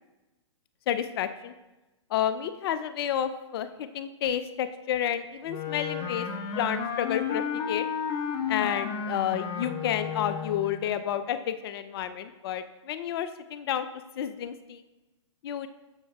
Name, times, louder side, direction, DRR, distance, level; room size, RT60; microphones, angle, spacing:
voice 1, 0.9-1.5 2.1-6.3 6.6-7.8 8.5-13.9 14.2-14.8 15.4-15.7, left 10 dB, 50° left, 11 dB, 0.5 m, -30 dB
Wind instrument woodwind instrument, 5.5-10.8, left 7 dB, 30° left, 1.1 m, -32 dB
15.0 x 6.3 x 2.3 m, 1.1 s
hypercardioid pair, 130°, 16 cm